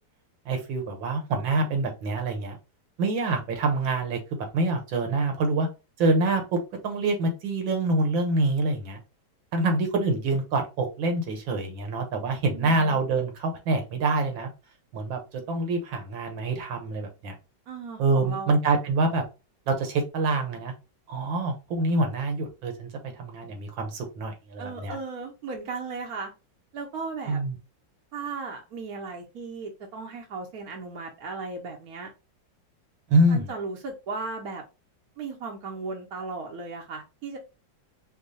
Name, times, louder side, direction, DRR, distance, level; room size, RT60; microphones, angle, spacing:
voice 1, 0.5-2.6 3.0-5.7 6.0-6.6 6.8-9.0 9.5-14.5 14.9-17.3 18.0-19.2 19.7-20.7 21.1-22.9 23.2-25.0 27.3-27.6 33.1-33.5, right 2 dB, 75° right, 1.8 m, -26 dB
voice 2, 12.5-13.0 17.7-18.6 24.6-26.3 26.7-27.4 28.1-32.1 33.3-34.6 35.2-37.4, right 4 dB, 60° right, 1.1 m, -36 dB
5.3 x 2.2 x 4.0 m
omnidirectional pair, 2.1 m